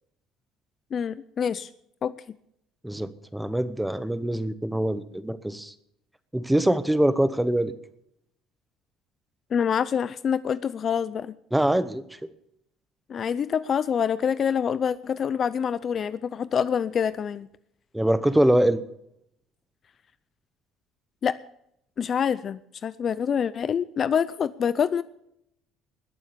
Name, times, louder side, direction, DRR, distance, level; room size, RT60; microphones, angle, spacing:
voice 1, 0.9-1.7 2.0-2.2 9.5-11.3 13.1-17.5 21.2-21.4 22.0-25.0, left 7 dB, 40° left, 16 dB, 0.5 m, -26 dB
voice 2, 2.8-5.7 6.3-7.7 11.5-12.0 17.9-18.8, right 1 dB, 5° right, 14 dB, 0.9 m, -23 dB
21.0 x 7.3 x 6.8 m, 0.74 s
cardioid pair, 135°, 0 cm